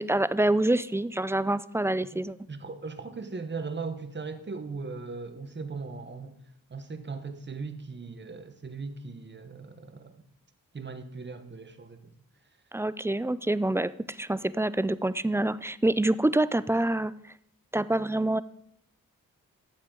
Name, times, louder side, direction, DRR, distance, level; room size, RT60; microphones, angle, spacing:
voice 1, 0.0-2.4 12.7-17.1 17.7-18.4, right 1 dB, 10° right, 0.3 m, -26 dB
voice 2, 2.5-6.4 6.7-10.2 10.7-12.1, right 4 dB, 30° right, 1.0 m, -38 dB
13.0 x 7.5 x 3.8 m
cardioid pair, 60°, 35 cm